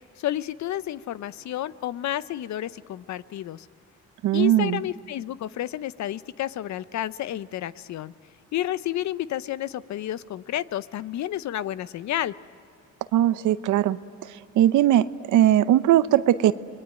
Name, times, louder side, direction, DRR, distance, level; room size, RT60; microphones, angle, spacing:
voice 1, 0.2-3.7 4.3-8.1 8.5-12.3, left 12 dB, 70° left, 17 dB, 0.7 m, -31 dB
voice 2, 4.2-4.8 13.1-14.0 14.5-16.5, right 12 dB, 80° right, 14 dB, 0.8 m, -19 dB
30.0 x 21.5 x 9.1 m, 2.6 s
cardioid pair, 90°, 30 cm